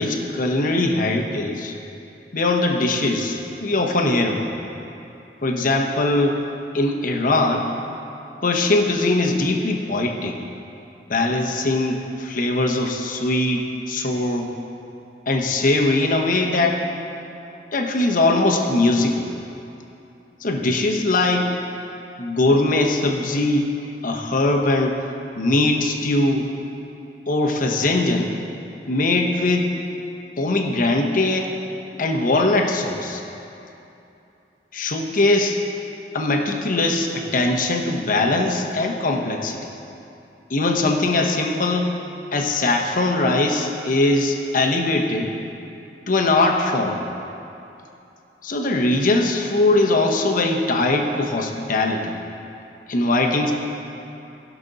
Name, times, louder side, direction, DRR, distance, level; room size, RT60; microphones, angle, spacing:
voice 1, 0.0-1.7 2.3-4.5 5.4-6.4 6.7-7.7 8.4-10.4 11.1-14.5 15.3-16.8 17.7-19.3 20.4-21.5 22.2-23.7 24.0-25.0 25.4-26.5 27.3-28.3 28.9-29.7 30.4-31.5 32.0-33.2 34.7-35.6 36.1-39.6 40.5-41.9 42.3-45.3 46.1-47.0 48.4-52.2 52.9-53.5, left 2 dB, 50° left, 2 dB, 0.9 m, -21 dB
16.0 x 6.1 x 4.0 m, 2.8 s
head